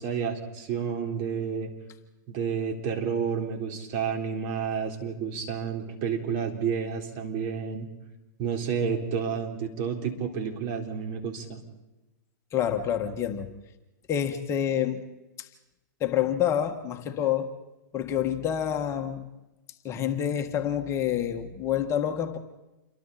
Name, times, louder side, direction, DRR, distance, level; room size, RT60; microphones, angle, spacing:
voice 1, 0.0-1.7 2.3-7.9 8.4-11.6, right 6 dB, 40° right, 3 dB, 3.9 m, -30 dB
voice 2, 12.5-13.5 14.1-15.0 15.4-15.5 16.0-17.5 17.9-19.3 19.8-22.4, left 9 dB, 25° left, 6 dB, 1.6 m, -27 dB
28.5 x 24.0 x 4.3 m, 1.0 s
hypercardioid pair, 125°, 10 cm